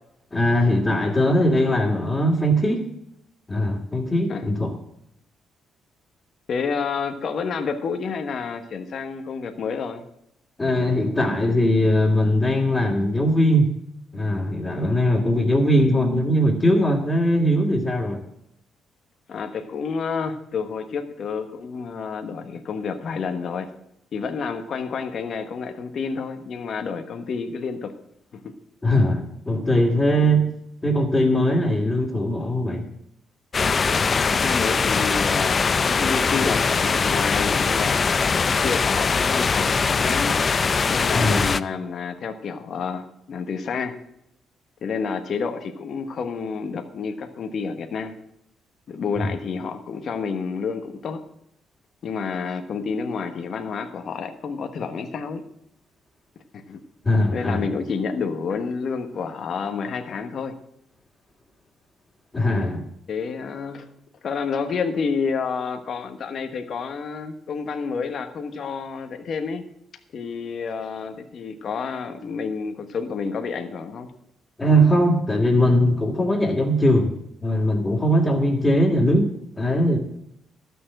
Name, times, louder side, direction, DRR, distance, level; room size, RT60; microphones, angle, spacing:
voice 1, 0.3-2.8 3.5-4.8 10.6-13.7 14.1-18.2 28.8-30.4 30.8-32.9 41.1-41.5 49.2-49.3 57.0-57.7 62.3-62.8 74.6-77.1 77.4-79.3 79.6-80.0, equal, 20° left, -4 dB, 2.3 m, -20 dB
voice 2, 6.5-10.0 19.3-23.7 24.1-27.9 28.3-28.5 34.0-40.4 40.9-43.9 44.8-48.1 48.9-51.2 52.0-55.4 56.5-56.8 57.3-60.5 63.1-63.9 64.2-69.6 70.1-74.1, left 5 dB, 55° left, 6 dB, 1.2 m, -29 dB
sound 1, 33.5-41.6, left 5 dB, 40° left, 0.5 m, -21 dB
12.5 x 6.9 x 7.7 m, 0.76 s
cardioid pair, 90°, 0 cm